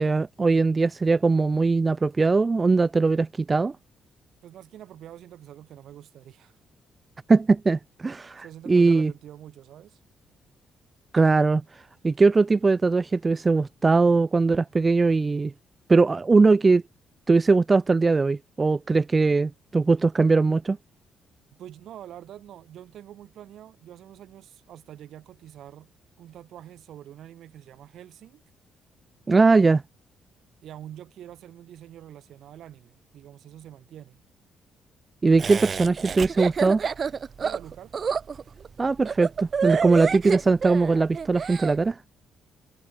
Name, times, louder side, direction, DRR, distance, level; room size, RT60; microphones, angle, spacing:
voice 1, 0.0-3.8 7.3-9.1 11.1-11.6 12.0-15.5 15.9-16.8 17.3-20.8 29.3-29.8 35.2-36.8 38.8-42.0, right 3 dB, 25° right, 0.6 m, -20 dB
voice 2, 4.4-6.6 8.4-10.0 21.5-25.9 26.2-28.4 30.6-34.2 37.4-38.0 40.0-40.1, right 11 dB, 75° right, 4.6 m, -45 dB
Laughter, 35.4-41.8, right 6 dB, 45° right, 1.0 m, -29 dB
cardioid pair, 90°, 0 cm